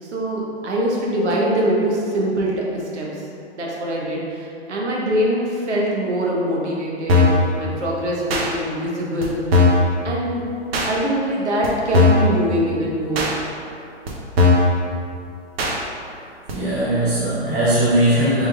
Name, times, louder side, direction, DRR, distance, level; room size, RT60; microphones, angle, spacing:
voice 1, 0.0-3.3 3.5-9.4 10.0-10.5 10.9-13.3, right 1 dB, 80° right, -3 dB, 1.1 m, -23 dB
sound 1, 7.1-7.4 8.3-8.5 9.2-9.3 9.5-9.9 10.7-10.9 11.6-11.7 11.9-12.3 13.2-13.3 14.1-14.2 14.4-14.7 15.6-15.7 16.5-16.6, left 3 dB, 60° right, 0.8 m, -16 dB
voice 2, 16.5-18.5, right 1 dB, 20° right, -9 dB, 0.4 m, -19 dB
4.2 x 3.7 x 2.3 m, 2.5 s
hypercardioid pair, 135°, 34 cm